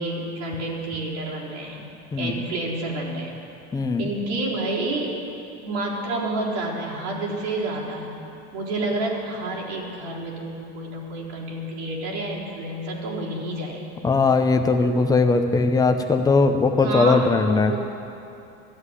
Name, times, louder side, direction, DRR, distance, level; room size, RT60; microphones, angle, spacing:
voice 1, 0.0-1.9 2.2-3.4 4.0-5.1 5.6-8.2 8.5-13.8 16.8-17.8, right 2 dB, 75° right, -5 dB, 4.2 m, -29 dB
voice 2, 3.7-4.0 14.0-17.7, left 3 dB, 10° left, 6 dB, 0.7 m, -19 dB
13.5 x 7.9 x 9.8 m, 2.7 s
supercardioid pair, 145°, 33 cm